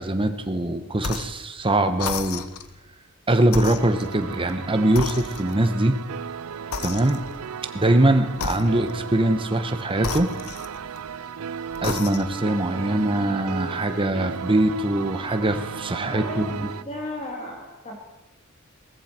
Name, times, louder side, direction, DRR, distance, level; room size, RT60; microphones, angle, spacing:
voice 1, 0.0-2.4 3.3-6.0 6.8-7.2 7.7-10.3 11.8-16.7, right 1 dB, 25° right, 8 dB, 1.1 m, -22 dB
sound 1, 1.0-1.4 2.0-2.7 3.5-4.6 5.0-5.7 6.7-7.5 8.3-9.1 10.0-11.1 11.7-12.4, left 5 dB, 90° left, 0.9 m, -33 dB
sound 2, 3.8-16.8, right 7 dB, 85° right, 0.5 m, -35 dB
voice 2, 16.1-18.0, left 1 dB, 30° left, 0 dB, 2.1 m, -35 dB
18.5 x 14.0 x 4.4 m, 0.98 s
head